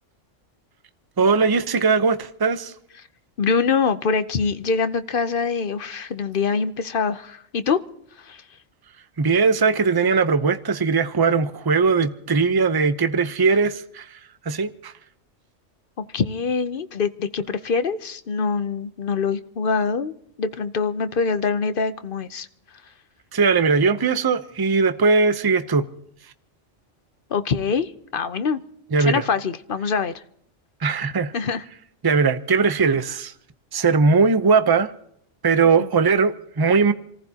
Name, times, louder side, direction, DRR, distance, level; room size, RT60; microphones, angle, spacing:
voice 1, 1.2-2.7 9.2-14.0 14.5-14.9 23.3-25.9 28.9-29.2 30.8-31.3 32.0-33.3 33.7-34.9 35.4-36.9, right 4 dB, 25° right, 0.6 m, -19 dB
voice 2, 3.4-7.8 8.1-8.4 16.0-20.1 20.4-22.5 27.3-28.6 29.0-30.2 31.3-31.6 35.6-35.9, left 5 dB, 50° left, 0.9 m, -24 dB
28.0 x 15.0 x 2.9 m
omnidirectional pair, 1.3 m